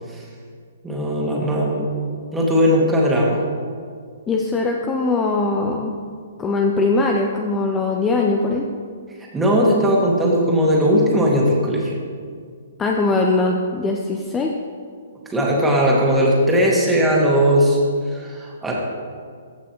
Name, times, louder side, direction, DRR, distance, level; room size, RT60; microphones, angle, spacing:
voice 1, 0.8-1.9 2.3-3.4 9.3-11.9 15.3-17.8 18.1-18.7, equal, 10° right, -3 dB, 1.8 m, -18 dB
voice 2, 4.3-6.0 6.4-8.7 12.8-14.5, left 3 dB, 15° left, 1 dB, 0.6 m, -21 dB
14.5 x 6.0 x 3.0 m, 2.1 s
hypercardioid pair, 125°, 0 cm